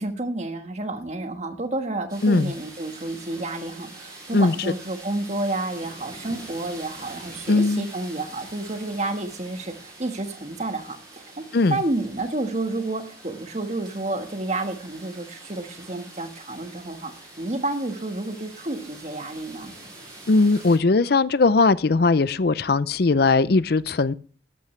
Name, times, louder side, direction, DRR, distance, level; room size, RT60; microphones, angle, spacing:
voice 1, 0.0-11.0 11.7-17.1 17.4-19.7, right 2 dB, 35° right, 1.5 m, -30 dB
sound 1, 2.1-20.8, right 2 dB, 20° right, 6.4 m, -44 dB
voice 2, 7.5-7.9 11.5-11.8 20.3-24.1, left 3 dB, 55° left, 0.5 m, -19 dB
13.5 x 12.0 x 3.3 m
head